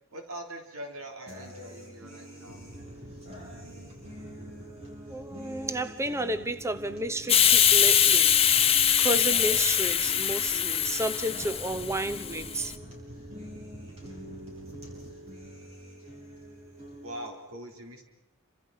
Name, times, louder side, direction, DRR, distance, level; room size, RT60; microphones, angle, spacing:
voice 1, 0.1-2.6 17.0-18.0, right 1 dB, 85° right, 3.6 m, -42 dB
sound 1, 1.3-17.3, equal, 30° right, 7.3 m, -46 dB
sound 2, 2.5-17.0, right 1 dB, 60° right, 4.2 m, -50 dB
voice 2, 5.1-8.4 9.0-12.8, right 1 dB, 15° right, 1.0 m, -32 dB
Hiss, 7.3-12.7, left 9 dB, 25° left, 1.0 m, -23 dB
29.0 x 26.0 x 5.8 m
head